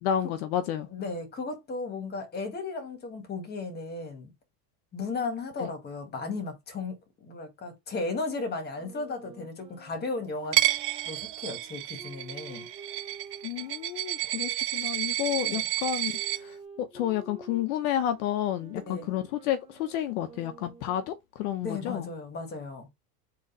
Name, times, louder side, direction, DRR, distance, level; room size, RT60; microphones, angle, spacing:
voice 1, 0.0-0.9 5.6-5.7 13.4-16.1 16.4-22.1, left 11 dB, 65° left, 0.9 m, -30 dB
voice 2, 0.9-4.3 4.9-10.6 11.0-12.6 15.4-15.6 18.7-19.1 21.6-22.9, left 3 dB, 20° left, 1.7 m, -35 dB
Wind instrument woodwind instrument, 8.7-14.6 15.4-21.1, right 4 dB, 10° right, 0.7 m, -50 dB
Coin (dropping), 10.5-16.4, right 15 dB, 80° right, 1.3 m, -30 dB
4.0 x 3.2 x 3.9 m
supercardioid pair, 140°, 47 cm